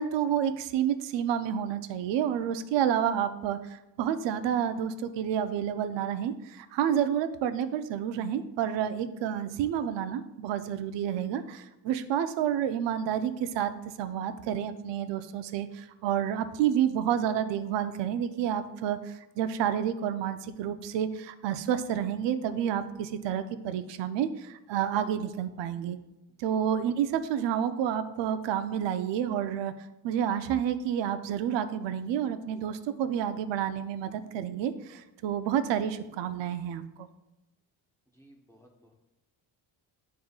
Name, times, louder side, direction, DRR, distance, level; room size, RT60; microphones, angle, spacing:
voice 1, 0.0-13.7 14.0-26.0 26.4-29.7 30.0-37.1, right 9 dB, 80° right, 10 dB, 0.6 m, -29 dB
voice 2, 38.2-38.9, right 1 dB, 5° left, 0 dB, 0.9 m, -58 dB
11.0 x 3.7 x 2.3 m, 0.94 s
cardioid pair, 150°, 43 cm